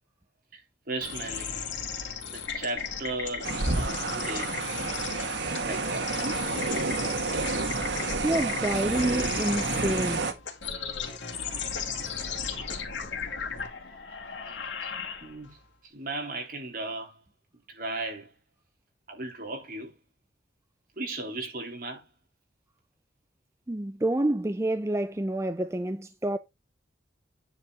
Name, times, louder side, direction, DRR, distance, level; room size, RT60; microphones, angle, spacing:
voice 1, 0.9-1.6 2.2-4.5 5.1-6.5 14.5-14.6 14.8-14.9 15.2-15.6 15.8-17.2 17.7-18.3 19.1-19.9 21.0-22.1, right 2 dB, 50° right, 3.5 m, -36 dB
sound 1, 1.0-15.5, left 6 dB, 80° left, 2.6 m, -36 dB
sound 2, 3.4-10.3, right 3 dB, 75° right, 1.8 m, -30 dB
voice 2, 8.2-10.3 23.7-26.4, right 1 dB, 15° right, 0.4 m, -28 dB
9.7 x 4.6 x 4.9 m
head